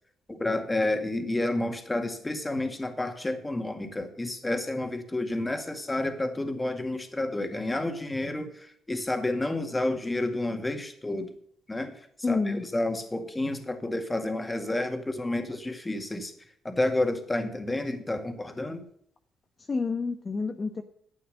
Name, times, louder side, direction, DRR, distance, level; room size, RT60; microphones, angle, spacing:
voice 1, 0.3-11.3 11.7-12.0 12.3-16.3 16.6-18.8, left 2 dB, 15° left, 6 dB, 2.0 m, -30 dB
voice 2, 12.2-12.7 19.6-20.8, left 4 dB, 35° left, 5 dB, 1.0 m, -29 dB
11.5 x 8.5 x 6.4 m, 0.65 s
cardioid pair, 90°, 0 cm